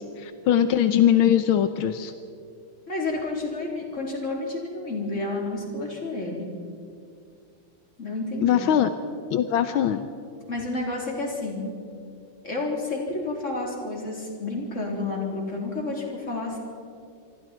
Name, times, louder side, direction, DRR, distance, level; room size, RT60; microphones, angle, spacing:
voice 1, 0.0-2.1 8.4-8.9 9.3-10.1, left 10 dB, 85° left, 9 dB, 1.6 m, -21 dB
voice 2, 2.9-6.5 8.0-8.7 10.5-11.7 12.4-16.6, left 2 dB, 35° left, -1 dB, 4.3 m, -30 dB
26.5 x 24.0 x 4.5 m, 2.4 s
omnidirectional pair, 2.2 m